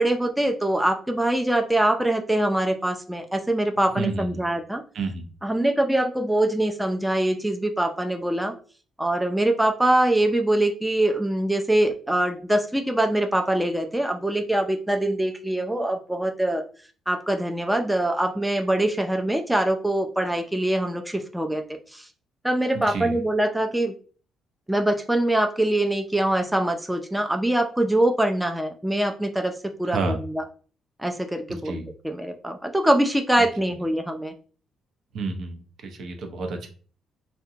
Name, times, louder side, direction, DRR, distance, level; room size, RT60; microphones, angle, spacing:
voice 1, 0.0-4.8 5.4-8.5 9.0-16.6 17.1-22.1 22.4-23.9 24.7-29.5 29.8-30.4 31.0-34.3, right 1 dB, 5° right, 5 dB, 0.3 m, -23 dB
voice 2, 4.0-4.4 4.9-5.2 22.7-23.2 29.9-30.2 31.5-31.9 35.1-36.7, right 3 dB, 70° right, 5 dB, 0.6 m, -30 dB
2.7 x 2.1 x 2.7 m, 0.40 s
cardioid pair, 90°, 0 cm